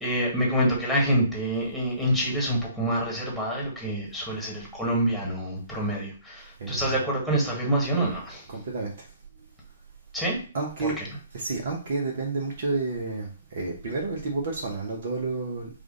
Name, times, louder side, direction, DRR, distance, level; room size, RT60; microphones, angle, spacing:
voice 1, 0.0-8.4 10.1-10.4 10.8-11.1, right 1 dB, ahead, 1.4 m, -26 dB
voice 2, 6.6-7.0 8.5-9.1 10.5-11.0 11.3-15.7, right 3 dB, 50° right, 0.9 m, -30 dB
4.8 x 2.5 x 3.8 m
figure-of-eight pair, 125°, 0 cm